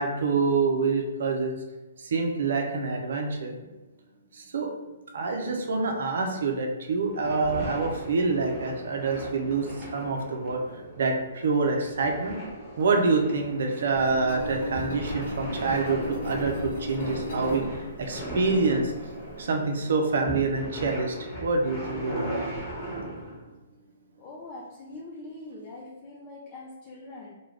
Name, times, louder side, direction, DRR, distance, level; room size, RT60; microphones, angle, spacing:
voice 1, 0.0-1.6 2.0-3.6 4.3-4.7 5.1-9.7 9.9-12.4 12.8-17.6 18.0-19.1 19.4-21.1 21.4-22.5, right 4 dB, 65° right, 3 dB, 0.5 m, -26 dB
sound 1, 7.1-23.4, right 1 dB, 10° left, 1.2 m, -38 dB
Engine, 14.0-19.4, equal, 50° left, 0.9 m, -36 dB
voice 2, 24.2-27.3, left 2 dB, 35° left, -3 dB, 0.5 m, -43 dB
2.3 x 2.2 x 3.2 m, 1.1 s
hypercardioid pair, 135°, 0 cm